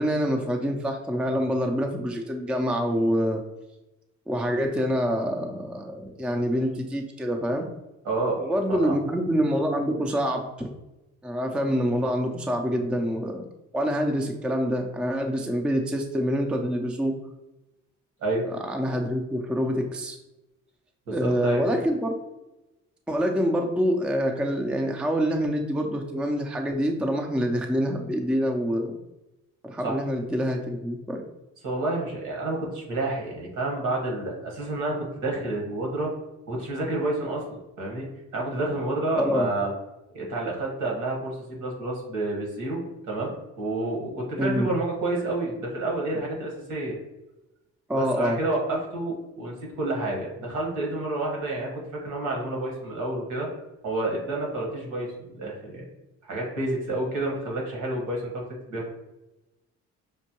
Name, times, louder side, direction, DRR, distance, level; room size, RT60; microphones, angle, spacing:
voice 1, 0.0-3.4 4.3-7.7 8.4-10.7 11.2-13.4 13.7-17.1 18.5-20.2 21.1-22.2 23.1-29.0 29.6-31.2 39.1-39.5 44.4-44.7 47.9-48.4, equal, 5° right, 3 dB, 0.4 m, -26 dB
voice 2, 8.0-8.4 8.7-9.0 18.2-18.4 21.1-21.6 29.8-30.0 31.6-36.1 36.5-38.1 38.3-39.7 40.1-42.8 43.1-46.9 48.0-53.5 53.8-55.8 56.2-58.4 58.7-58.9, right 2 dB, 75° right, -1 dB, 1.4 m, -29 dB
5.3 x 2.1 x 2.9 m, 0.98 s
cardioid pair, 90°, 30 cm